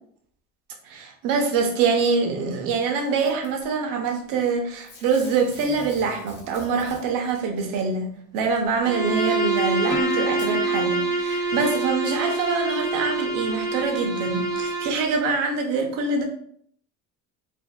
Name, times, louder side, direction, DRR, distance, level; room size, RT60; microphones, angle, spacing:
voice 1, 0.8-16.2, right 4 dB, 80° right, 2 dB, 0.6 m, -25 dB
Packing tape duct tape / Tearing, 3.2-3.6 4.8-7.4 8.6-8.7 9.6-9.7 10.3-10.5 11.2-11.3, left 1 dB, 35° left, 0.7 m, -45 dB
Bowed string instrument, 8.8-15.0, right 3 dB, 15° right, 0.6 m, -26 dB
Plucked string instrument, 9.9-12.6, left 4 dB, 80° left, 0.9 m, -35 dB
2.5 x 2.3 x 2.2 m, 0.62 s
cardioid pair, 145°, 32 cm